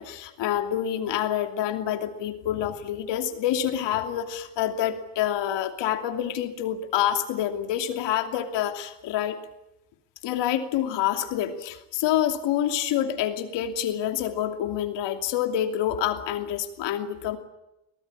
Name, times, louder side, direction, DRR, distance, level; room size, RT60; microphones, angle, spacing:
voice 1, 0.0-9.4 10.2-17.4, left 10 dB, 80° left, 7 dB, 2.8 m, -27 dB
23.5 x 18.5 x 9.8 m, 0.92 s
cardioid pair, 170°, 42 cm